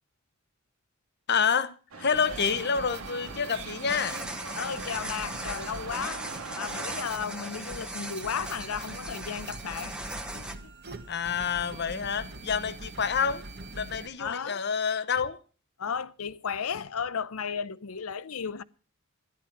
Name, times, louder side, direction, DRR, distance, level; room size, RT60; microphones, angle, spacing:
voice 1, 1.3-4.2 11.1-13.4 13.7-15.4, left 6 dB, 50° left, 0.9 m, -28 dB
sound 1, 1.9-7.1, right 4 dB, 90° right, 2.0 m, -42 dB
sound 2, 2.1-14.1, right 2 dB, 50° right, 1.5 m, -43 dB
sound 3, 3.9-10.5, right 1 dB, 5° right, 1.1 m, -39 dB
voice 2, 4.6-6.2 6.6-9.9 10.3-10.7 14.2-14.6 15.8-18.6, left 6 dB, 80° left, 0.6 m, -34 dB
13.5 x 11.0 x 5.9 m
head